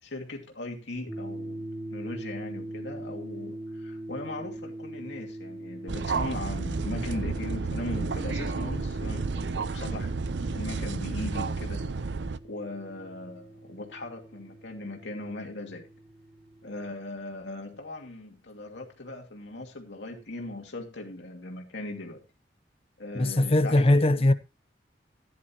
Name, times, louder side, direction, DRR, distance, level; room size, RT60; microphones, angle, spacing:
voice 1, 0.0-10.1 10.5-11.9 12.4-15.9 16.6-22.2 23.0-24.3, left 2 dB, 75° left, 2.6 m, -39 dB
sound 1, 1.1-16.9, right 1 dB, 5° right, 1.3 m, -42 dB
sound 2, 5.9-12.4, right 4 dB, 70° right, 0.6 m, -31 dB
voice 2, 23.1-24.3, left 1 dB, 35° left, 0.7 m, -21 dB
15.5 x 10.5 x 2.9 m
head